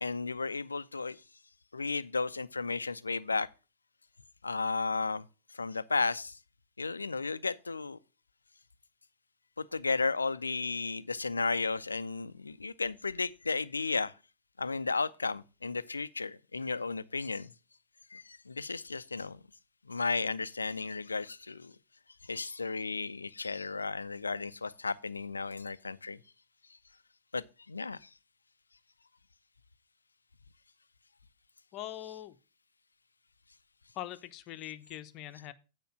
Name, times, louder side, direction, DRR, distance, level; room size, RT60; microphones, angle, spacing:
voice 1, 0.0-1.2 1.7-3.5 4.4-5.3 5.5-6.4 6.8-8.0 9.6-14.1 14.6-17.5 18.1-19.4 19.9-21.7 22.2-26.2 27.3-28.1, left 4 dB, 80° left, 0.4 m, -34 dB
voice 2, 31.7-32.4 33.9-35.5, left 13 dB, 40° left, 0.8 m, -42 dB
9.3 x 5.1 x 6.1 m
figure-of-eight pair, 90°, 0 cm